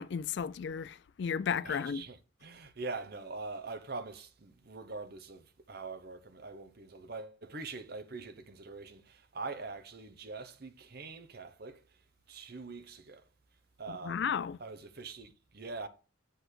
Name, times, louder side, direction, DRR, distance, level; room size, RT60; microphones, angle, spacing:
voice 1, 0.0-2.0 13.9-14.6, left 7 dB, 60° left, 0.3 m, -34 dB
voice 2, 1.6-11.8 12.3-13.2 13.8-14.3 14.6-15.9, right 3 dB, 50° right, 0.8 m, -43 dB
7.9 x 3.3 x 6.2 m
head